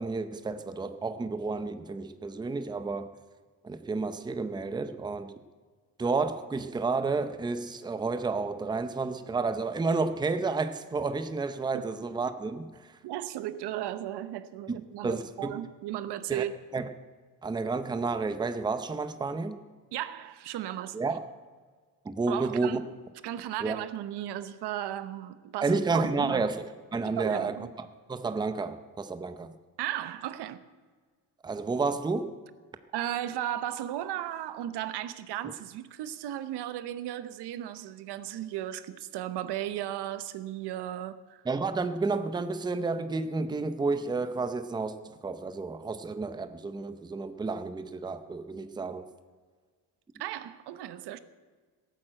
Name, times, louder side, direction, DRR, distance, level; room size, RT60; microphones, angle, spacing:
voice 1, 0.0-3.1 3.6-5.3 6.0-13.0 14.7-15.5 16.3-16.4 16.7-16.9 17.4-19.6 20.9-21.2 22.0-22.8 23.6-23.8 25.6-27.6 28.1-29.5 31.4-32.3 41.4-45.0 45.2-49.1, right 4 dB, 10° right, 0.6 m, -31 dB
voice 2, 13.0-16.5 19.9-21.0 22.3-22.8 23.2-26.4 27.2-27.7 29.8-30.6 32.9-41.4 50.2-51.2, right 12 dB, 85° right, 1.0 m, -35 dB
17.0 x 9.0 x 7.7 m
cardioid pair, 160°, 39 cm